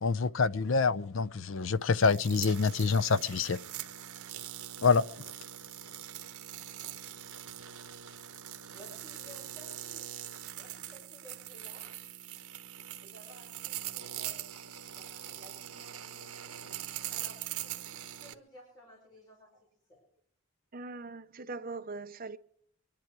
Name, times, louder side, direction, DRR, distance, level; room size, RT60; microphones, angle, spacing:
voice 1, 0.0-3.6 4.8-5.0, left 4 dB, 60° left, 0.5 m, -26 dB
sound 1, 1.9-18.3, right 11 dB, 85° right, 1.1 m, -42 dB
voice 2, 8.7-10.2 10.6-11.9 13.0-16.7 17.1-20.0, equal, 20° left, 5.8 m, -56 dB
voice 3, 20.7-22.4, right 3 dB, 40° right, 0.8 m, -41 dB
24.5 x 10.5 x 4.8 m
head